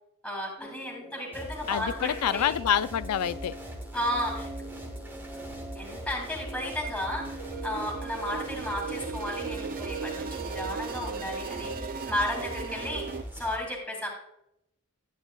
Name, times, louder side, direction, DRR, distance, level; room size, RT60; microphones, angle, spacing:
voice 1, 0.2-2.6 3.9-4.5 5.7-14.1, left 1 dB, 5° left, -2 dB, 2.5 m, -33 dB
sound 1, 0.6-13.2, right 1 dB, 20° left, 1.1 m, -45 dB
sound 2, 1.3-13.6, equal, 10° right, 1.4 m, -42 dB
voice 2, 1.7-3.6, left 9 dB, 80° left, 16 dB, 0.4 m, -27 dB
sound 3, 7.2-13.2, right 6 dB, 40° right, 0.4 m, -37 dB
12.0 x 9.1 x 2.3 m, 0.80 s
head